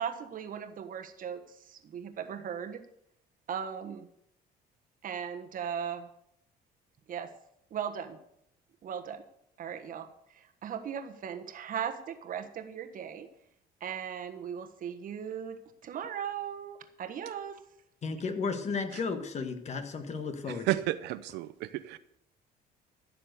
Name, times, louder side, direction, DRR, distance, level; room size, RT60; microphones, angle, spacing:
voice 1, 0.0-2.8 3.5-4.1 5.0-6.1 7.1-7.3 7.7-8.2 8.8-9.2 9.6-13.3 13.8-15.6 15.8-17.6, right 8 dB, 55° right, 1.4 m, -38 dB
voice 2, 18.0-20.7, left 4 dB, 40° left, 1.7 m, -34 dB
voice 3, 20.5-22.0, right 15 dB, 90° right, 0.7 m, -32 dB
14.5 x 6.8 x 6.8 m
cardioid pair, 110°, 17 cm